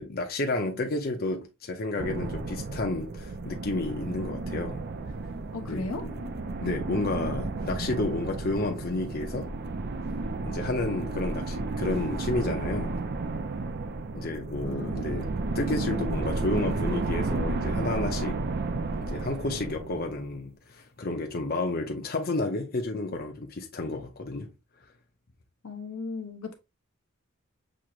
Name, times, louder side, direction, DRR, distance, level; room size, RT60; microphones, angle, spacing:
voice 1, 0.0-4.8 5.7-6.2 6.6-9.5 10.4-13.0 14.1-15.3 15.5-18.4 19.0-24.5, left 2 dB, 45° left, 0.7 m, -31 dB
sound 1, 2.0-20.4, right 3 dB, 50° right, 0.5 m, -32 dB
voice 2, 5.5-6.0 14.6-15.0 25.6-26.5, left 3 dB, 80° left, 0.9 m, -36 dB
6.2 x 3.0 x 2.5 m
head